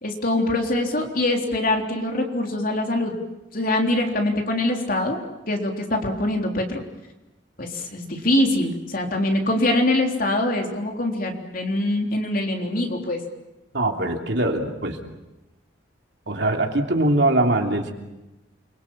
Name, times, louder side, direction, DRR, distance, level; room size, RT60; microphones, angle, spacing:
voice 1, 0.0-3.2 3.5-5.2 5.5-6.8 7.6-13.2, left 1 dB, 45° left, 2 dB, 3.7 m, -23 dB
voice 2, 13.7-15.1 16.3-17.9, right 1 dB, 60° right, 3 dB, 3.1 m, -22 dB
29.5 x 23.0 x 7.5 m, 0.99 s
head